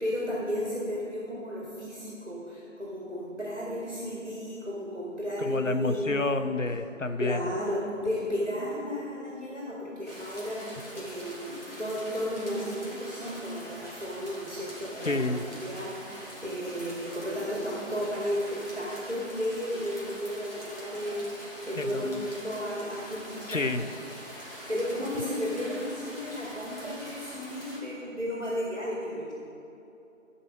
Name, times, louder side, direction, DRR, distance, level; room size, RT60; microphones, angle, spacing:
voice 1, 0.0-6.4 7.0-24.0 24.7-29.3, equal, 55° right, -6 dB, 2.2 m, -34 dB
voice 2, 5.4-7.4 15.0-15.4 21.8-22.3 23.5-23.9, left 3 dB, 70° left, 9 dB, 0.8 m, -29 dB
sound 1, 10.0-27.8, equal, 45° left, 2.6 m, -44 dB
11.5 x 5.6 x 6.2 m, 2.9 s
figure-of-eight pair, 180°, 40 cm